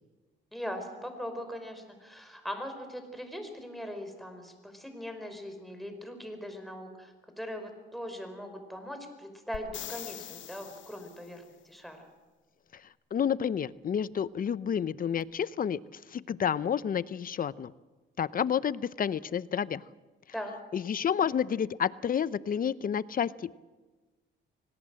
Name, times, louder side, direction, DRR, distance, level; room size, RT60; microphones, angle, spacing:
voice 1, 0.5-12.1 20.3-20.5, equal, ahead, 5 dB, 5.0 m, -40 dB
sound 1, 9.5-11.4 15.2-15.3, left 12 dB, 75° left, 1.1 m, -43 dB
voice 2, 13.1-15.8 16.1-17.7 18.2-19.8 20.7-23.6, left 8 dB, 45° left, 18 dB, 0.7 m, -30 dB
25.0 x 18.0 x 7.7 m, 1.3 s
cardioid pair, 90°, 20 cm